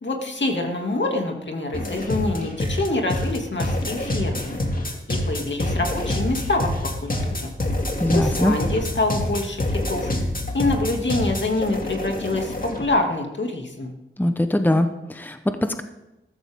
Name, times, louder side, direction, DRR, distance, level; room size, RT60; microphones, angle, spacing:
voice 1, 0.0-4.6 5.1-7.5 8.1-10.1 10.5-13.9, left 2 dB, 60° left, 2 dB, 2.5 m, -26 dB
sound 1, 1.7-12.8, left 1 dB, 40° left, 2.4 m, -26 dB
voice 2, 8.0-8.5 14.2-15.8, left 1 dB, 10° left, 8 dB, 1.0 m, -22 dB
14.0 x 13.5 x 3.7 m, 0.96 s
cardioid pair, 45°, 21 cm